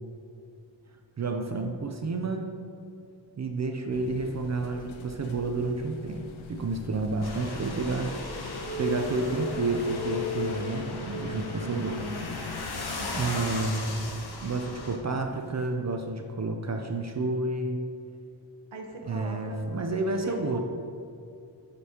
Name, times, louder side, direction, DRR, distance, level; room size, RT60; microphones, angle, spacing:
voice 1, 1.2-2.5 3.4-6.2 6.5-8.1 8.4-12.0 13.2-13.9 14.4-17.8 19.0-20.6, right 3 dB, 40° right, 3 dB, 0.4 m, -30 dB
sound 1, 3.9-13.7, left 4 dB, 85° left, 0.6 m, -44 dB
sound 2, 7.2-15.0, left 3 dB, 55° left, 0.8 m, -38 dB
sound 3, 8.0-12.3 15.5-15.7, left 4 dB, 25° left, 0.7 m, -37 dB
voice 2, 11.6-12.4 13.0-13.3 18.7-19.6 20.2-20.6, right 1 dB, 75° right, 2 dB, 1.0 m, -40 dB
7.9 x 5.2 x 2.8 m, 2.5 s
wide cardioid pair, 130°, 46 cm